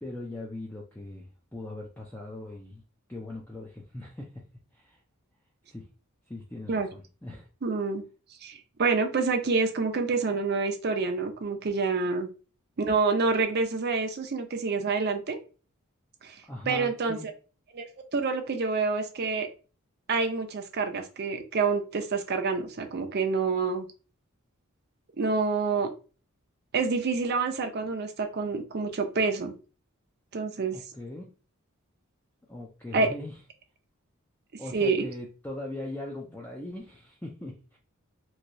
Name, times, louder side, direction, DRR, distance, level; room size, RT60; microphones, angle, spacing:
voice 1, 0.0-2.8 3.1-4.3 4.7-5.0 5.7-5.9 6.3-7.5 12.0-12.1 16.4-17.3 30.7-31.3 32.5-33.4 34.6-37.8, left 1 dB, 10° left, -2 dB, 0.4 m, -40 dB
voice 2, 7.6-8.0 8.4-12.3 12.8-15.4 16.2-16.4 16.7-17.2 17.7-19.5 20.1-23.9 25.2-25.9 26.7-29.5 30.3-30.8 32.9-33.1 34.7-35.0, right 4 dB, 50° right, 5 dB, 0.5 m, -27 dB
3.0 x 2.7 x 2.6 m, 0.36 s
head